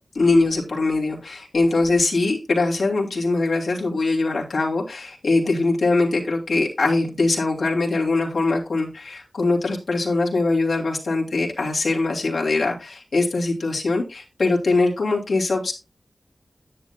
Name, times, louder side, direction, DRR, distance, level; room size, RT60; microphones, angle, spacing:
voice 1, 0.1-15.7, left 3 dB, 80° left, -2 dB, 2.8 m, -22 dB
10.0 x 10.0 x 2.3 m, 0.28 s
wide cardioid pair, 80°, 0 cm